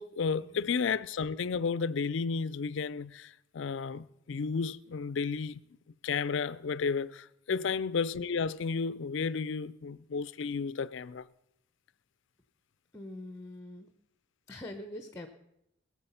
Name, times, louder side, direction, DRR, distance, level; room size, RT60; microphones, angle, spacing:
voice 1, 0.0-5.6 6.0-11.2, left 5 dB, 65° left, 0.4 m, -32 dB
voice 2, 12.9-13.9 14.5-15.3, left 1 dB, 15° left, 0.8 m, -44 dB
20.0 x 7.2 x 5.6 m
head